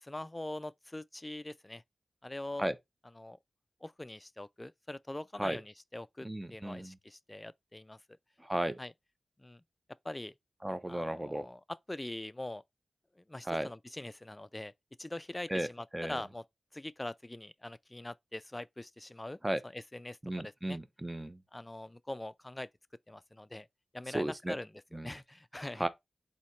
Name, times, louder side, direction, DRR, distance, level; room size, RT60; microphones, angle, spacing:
voice 1, 0.0-1.8 2.2-2.7 3.2-3.4 3.8-8.0 8.8-8.9 9.4-9.6 10.0-10.3 10.9-12.6 13.2-14.7 15.0-16.4 16.7-19.4 19.6-20.8 21.5-22.7 23.1-23.7 23.9-25.9, left 1 dB, 20° left, 0.3 m, -43 dB
voice 2, 6.2-7.0 8.4-8.8 10.6-11.5 13.5-13.7 15.5-15.7 15.9-16.2 19.4-19.6 20.2-21.4 24.1-24.6 24.9-25.1 25.8-25.9, right 1 dB, 15° right, 0.7 m, -34 dB
4.1 x 2.8 x 4.4 m
cardioid pair, 55°, 0 cm